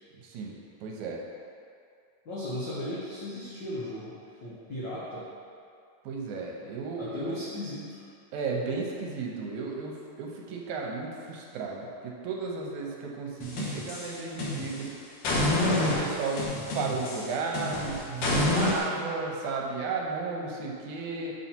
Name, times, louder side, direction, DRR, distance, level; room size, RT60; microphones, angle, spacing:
voice 1, 0.1-0.6 0.8-1.2 6.0-7.5 8.3-15.0 15.6-21.3, right 4 dB, 80° right, -1 dB, 2.1 m, -34 dB
voice 2, 2.2-5.3 7.0-8.0, left 1 dB, 85° left, -9 dB, 1.0 m, -36 dB
sound 1, 13.4-14.8 15.2-18.8, left 2 dB, 65° left, 1.8 m, -28 dB
6.2 x 4.2 x 4.3 m, 2.4 s
omnidirectional pair, 3.5 m